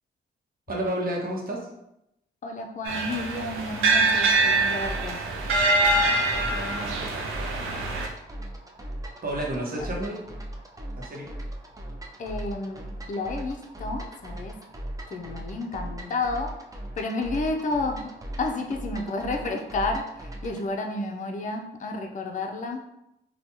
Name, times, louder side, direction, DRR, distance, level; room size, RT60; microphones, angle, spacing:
voice 1, 0.7-1.7 6.4-7.1 9.2-10.2 10.9-11.3, right 1 dB, 45° right, -2 dB, 0.9 m, -31 dB
voice 2, 2.4-5.2 12.2-14.6 15.1-16.6 17.0-22.8, left 2 dB, 40° left, 2 dB, 0.5 m, -31 dB
sound 1, 2.9-8.1, right 2 dB, 90° right, 0.4 m, -24 dB
sound 2, 4.8-20.7, right 1 dB, 15° right, 0.5 m, -38 dB
3.2 x 2.2 x 2.9 m, 0.83 s
cardioid pair, 55°, 20 cm